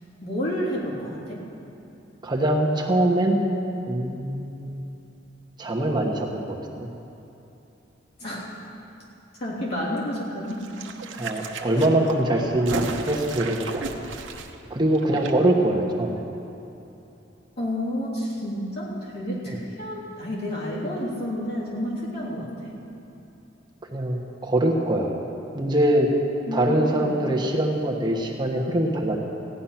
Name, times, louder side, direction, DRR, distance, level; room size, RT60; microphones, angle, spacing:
voice 1, 0.2-1.4 8.2-8.6 9.4-10.6 11.7-11.9 17.6-22.7 26.5-27.1, equal, 60° left, -6 dB, 3.4 m, -30 dB
voice 2, 2.2-3.4 3.9-4.8 5.6-6.9 11.2-13.9 14.7-16.2 19.5-19.6 23.9-25.1 25.5-26.1 26.5-29.2, right 1 dB, 25° right, -1 dB, 1.2 m, -23 dB
sound 1, 10.5-15.3 15.6-15.7, right 3 dB, 80° right, 1.0 m, -35 dB
15.5 x 10.5 x 5.8 m, 2.9 s
head